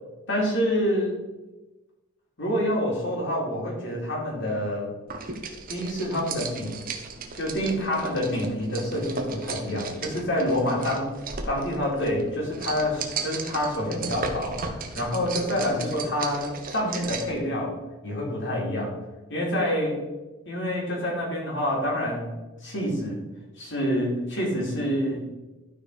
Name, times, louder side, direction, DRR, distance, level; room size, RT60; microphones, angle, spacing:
voice 1, 0.3-1.1 2.4-4.9 5.7-6.8 7.4-11.1 11.5-17.7 18.0-18.9 19.3-20.0 20.4-22.3 22.6-23.2 23.6-25.2, equal, 55° left, -2 dB, 3.2 m, -27 dB
sound 1, 5.1-17.4, right 4 dB, 40° right, 1.1 m, -36 dB
12.5 x 4.9 x 5.0 m, 1.1 s
head